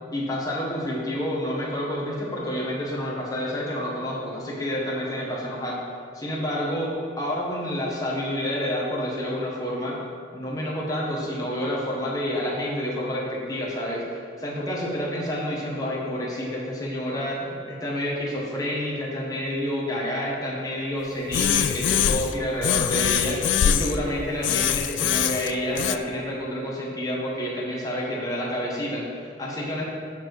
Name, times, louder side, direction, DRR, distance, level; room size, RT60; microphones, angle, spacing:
voice 1, 0.1-5.8 6.1-9.9 10.3-29.9, equal, 20° left, -4 dB, 1.6 m, -29 dB
sound 1, 21.3-22.3 22.6-24.0 24.4-26.0, left 9 dB, 80° left, 0.3 m, -23 dB
11.5 x 4.6 x 5.0 m, 2.2 s
head